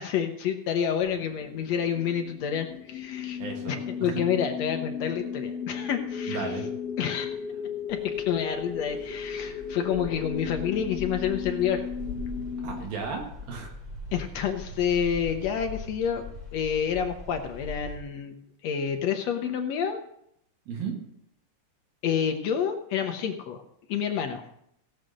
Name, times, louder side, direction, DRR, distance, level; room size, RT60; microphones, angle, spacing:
voice 1, 0.0-3.4 3.7-6.5 7.0-7.3 7.9-11.8 14.1-16.2 16.5-18.3 18.6-20.0 22.0-23.6 23.9-24.4, left 8 dB, 75° left, 5 dB, 1.6 m, -28 dB
sound 1, 1.1-12.8, left 7 dB, 50° left, 2.1 m, -35 dB
voice 2, 3.4-4.2 6.3-6.7 12.6-13.7 20.7-21.0, right 5 dB, 85° right, 1 dB, 3.6 m, -35 dB
sound 2, 7.9-18.0, left 2 dB, 10° right, 3.2 m, -42 dB
17.0 x 6.5 x 6.5 m, 0.74 s
omnidirectional pair, 4.1 m